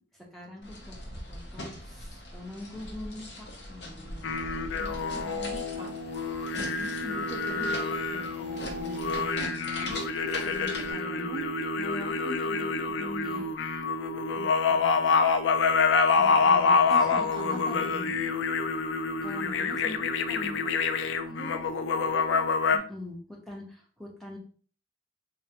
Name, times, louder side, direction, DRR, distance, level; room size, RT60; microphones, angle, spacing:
voice 1, 0.3-0.9 1.3-4.4 6.8-7.8 8.1-9.4 9.8-10.1 10.4-11.5 11.8-13.5 14.4-15.2 16.2-18.2 19.2-20.7 22.7-24.4, left 1 dB, ahead, -4 dB, 0.8 m, -42 dB
sound 1, 0.6-10.9, left 1 dB, 65° left, 0.7 m, -41 dB
sound 2, 4.2-22.8, left 4 dB, 80° left, 0.3 m, -27 dB
voice 2, 4.8-5.9 14.9-15.4 16.9-17.9 21.3-22.4, right 1 dB, 25° right, -2 dB, 0.4 m, -42 dB
3.7 x 2.2 x 2.8 m, 0.41 s
head